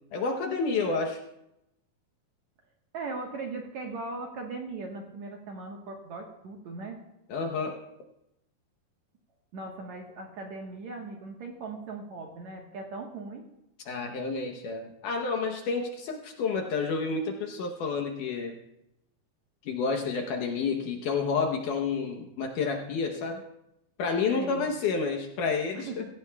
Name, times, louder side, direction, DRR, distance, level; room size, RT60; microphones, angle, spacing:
voice 1, 0.1-1.2 7.3-7.8 13.9-18.6 19.7-23.4 24.0-26.1, left 4 dB, 70° left, 3 dB, 2.1 m, -30 dB
voice 2, 2.9-7.0 9.5-13.5 24.3-24.7 25.7-26.0, right 3 dB, 60° right, 1 dB, 2.1 m, -39 dB
24.0 x 14.5 x 2.3 m, 0.85 s
omnidirectional pair, 4.5 m